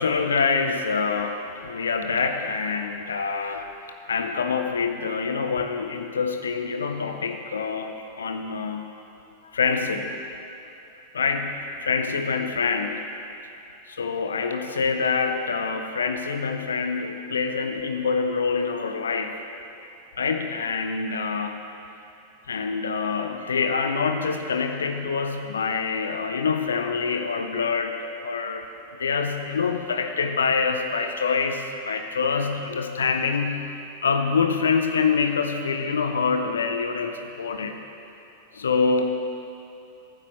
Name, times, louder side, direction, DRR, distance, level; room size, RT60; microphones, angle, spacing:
voice 1, 0.0-8.9 9.5-10.1 11.1-13.0 13.9-19.4 20.2-21.6 22.5-28.7 29.0-33.8 34.0-37.8 38.5-39.0, left 5 dB, 70° left, 6 dB, 0.6 m, -26 dB
12.0 x 9.6 x 3.1 m, 2.9 s
figure-of-eight pair, 90°, 0 cm